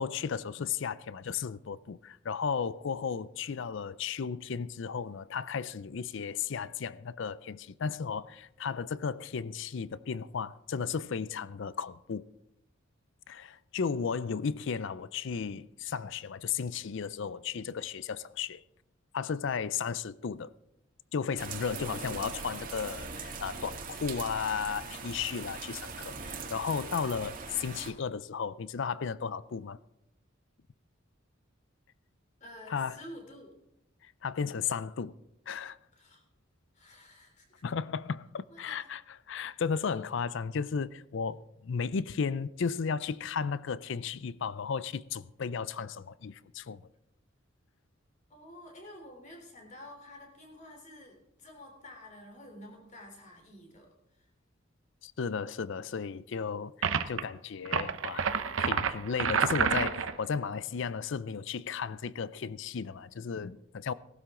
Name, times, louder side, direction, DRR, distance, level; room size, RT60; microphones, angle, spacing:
voice 1, 0.0-12.3 13.3-18.6 19.1-20.5 21.1-29.8 32.7-33.0 34.0-35.1 35.5-35.8 37.6-39.0 39.3-46.8 55.0-58.3 58.6-63.9, left 6 dB, 65° left, 0.5 m, -34 dB
sound 1, 21.4-27.9, right 4 dB, 45° right, 1.8 m, -41 dB
voice 2, 32.4-33.5 35.9-36.2 36.7-37.6 38.5-38.9 48.3-53.9 54.1-54.3, left 1 dB, 35° left, 3.4 m, -50 dB
sound 2, 56.8-57.2 57.6-60.2, right 6 dB, 75° right, 0.8 m, -29 dB
18.5 x 12.5 x 3.8 m
head